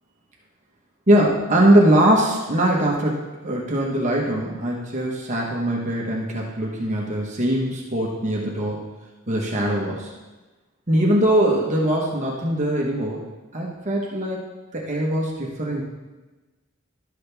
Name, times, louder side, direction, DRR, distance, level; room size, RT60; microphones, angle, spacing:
voice 1, 1.1-8.8 9.3-10.1 10.9-13.2 13.5-14.4 14.7-15.8, right 1 dB, 40° right, -3 dB, 1.2 m, -21 dB
11.5 x 6.5 x 3.4 m, 1.2 s
head